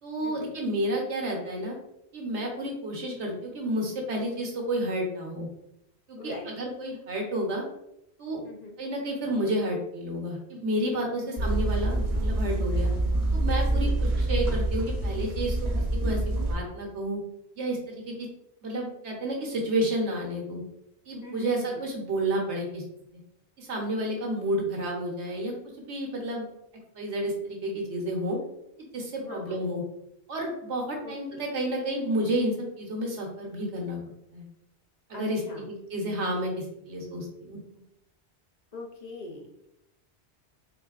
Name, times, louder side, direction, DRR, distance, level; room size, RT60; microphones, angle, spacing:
voice 1, 0.0-1.8 2.1-5.5 6.1-7.6 8.2-8.4 8.8-12.9 13.3-15.6 16.0-17.2 17.6-18.3 18.6-20.6 21.1-22.8 23.6-25.5 25.9-26.4 26.9-28.4 28.9-29.8 30.3-34.0 34.3-34.5 35.1-37.6, right 1 dB, 80° right, 0 dB, 1.3 m, -30 dB
voice 2, 6.2-6.5 8.4-8.8 11.2-11.6 13.7-14.0 21.2-21.8 29.2-29.6 31.0-31.4 35.1-35.6 38.7-39.7, left 3 dB, 45° left, -1 dB, 0.6 m, -42 dB
sound 1, 11.4-16.5, right 2 dB, 60° right, 1.1 m, -26 dB
4.3 x 3.6 x 2.4 m, 0.82 s
omnidirectional pair, 1.2 m